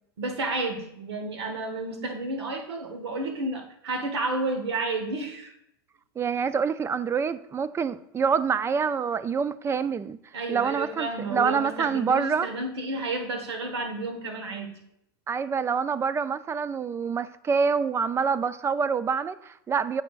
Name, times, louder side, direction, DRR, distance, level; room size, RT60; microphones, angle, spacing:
voice 1, 0.2-5.5 10.3-14.8, right 2 dB, 85° right, 1.4 m, -31 dB
voice 2, 6.2-10.2 10.5-12.5 15.3-20.0, right 6 dB, 20° right, 0.4 m, -26 dB
9.5 x 7.1 x 2.5 m
hypercardioid pair, 100°, 13 cm